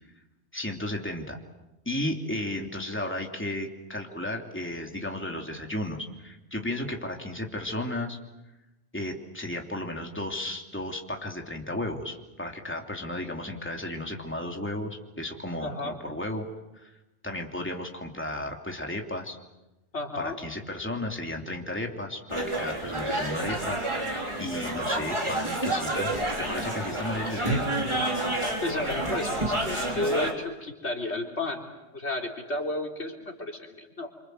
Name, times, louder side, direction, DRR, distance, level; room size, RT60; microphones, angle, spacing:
voice 1, 0.5-1.4 1.8-8.2 8.9-16.5 16.7-16.9 17.2-19.4 20.2-24.1 24.4-26.1 26.4-27.8, left 1 dB, 10° left, 2 dB, 3.0 m, -34 dB
voice 2, 15.6-16.0 19.9-20.4 28.6-31.6 31.9-34.1, left 2 dB, 75° left, 2 dB, 3.9 m, -32 dB
sound 1, 22.3-30.3, right 1 dB, 25° right, 3.7 m, -29 dB
29.0 x 26.0 x 7.9 m, 1.0 s
omnidirectional pair, 1.2 m